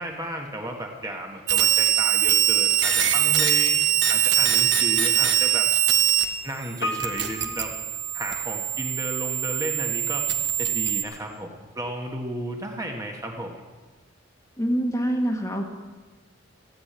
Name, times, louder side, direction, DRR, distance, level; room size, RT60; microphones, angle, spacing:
voice 1, 0.0-3.8 4.1-5.7 6.4-7.7 8.1-10.3 10.6-13.6, right 1 dB, 15° right, 1 dB, 1.3 m, -33 dB
sound 1, 1.5-6.2 6.5-11.0, right 10 dB, 60° right, 1.3 m, -22 dB
Piano, 6.8-8.9 9.1-9.2, equal, 65° left, 1.0 m, -34 dB
voice 2, 14.6-15.6, right 1 dB, 15° left, 2 dB, 1.3 m, -25 dB
14.5 x 8.4 x 8.8 m, 1.3 s
head